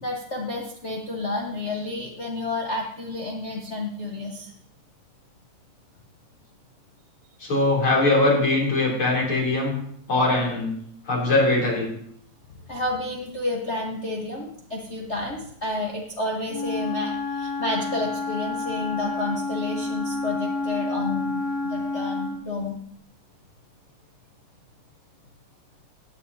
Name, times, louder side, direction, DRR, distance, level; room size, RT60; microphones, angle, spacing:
voice 1, 0.0-4.5 12.7-22.8, left 2 dB, 90° left, -1 dB, 0.6 m, -30 dB
voice 2, 7.4-9.7 10.1-10.7 11.1-11.9, left 2 dB, 45° left, -3 dB, 3.8 m, -21 dB
Wind instrument woodwind instrument, 16.5-22.5, left 3 dB, 70° left, 2.0 m, -29 dB
16.0 x 9.2 x 2.7 m, 0.67 s
omnidirectional pair, 3.3 m